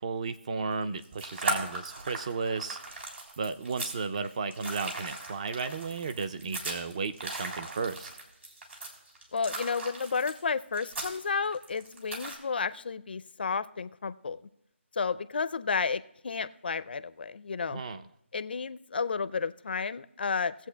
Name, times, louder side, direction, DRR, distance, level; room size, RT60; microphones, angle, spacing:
voice 1, 0.0-2.8 3.4-8.1 17.7-18.0, right 4 dB, 30° right, 11 dB, 0.4 m, -34 dB
sound 1, 0.8-12.4, right 2 dB, 70° right, 3.3 m, -38 dB
voice 2, 9.3-14.4 15.0-17.8 18.3-20.5, left 5 dB, 50° left, 14 dB, 0.4 m, -32 dB
19.0 x 8.0 x 2.2 m, 0.79 s
figure-of-eight pair, 160°, 7 cm